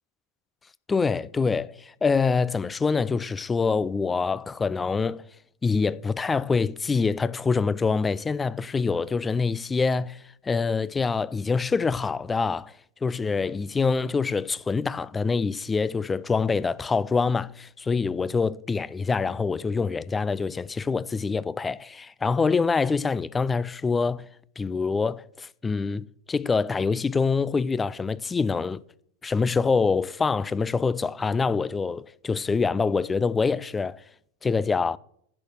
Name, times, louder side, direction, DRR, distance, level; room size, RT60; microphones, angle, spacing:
voice 1, 0.9-5.2 5.6-12.7 13.0-24.3 24.6-28.8 29.2-34.0 34.4-35.0, left 4 dB, 15° left, 0.3 m, -25 dB
10.5 x 6.5 x 6.1 m
figure-of-eight pair, 90°, 0 cm